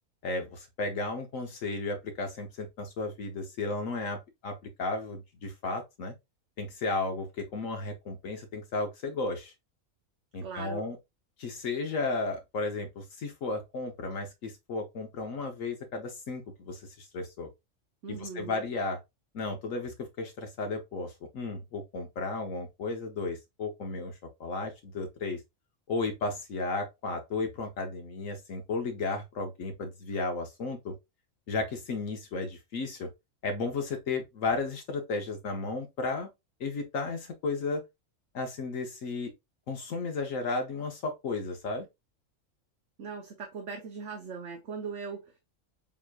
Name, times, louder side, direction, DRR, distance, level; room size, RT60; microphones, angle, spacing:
voice 1, 0.2-6.1 6.6-9.5 10.3-11.0 11.4-17.5 18.1-19.0 19.3-25.4 25.9-31.0 31.5-33.1 33.4-36.3 36.6-37.8 38.3-39.3 39.7-41.9, left 3 dB, 75° left, 1.3 m, -34 dB
voice 2, 10.4-10.9 18.0-18.6 43.0-45.4, right 5 dB, 60° right, 1.2 m, -39 dB
7.3 x 2.9 x 2.3 m
omnidirectional pair, 1.4 m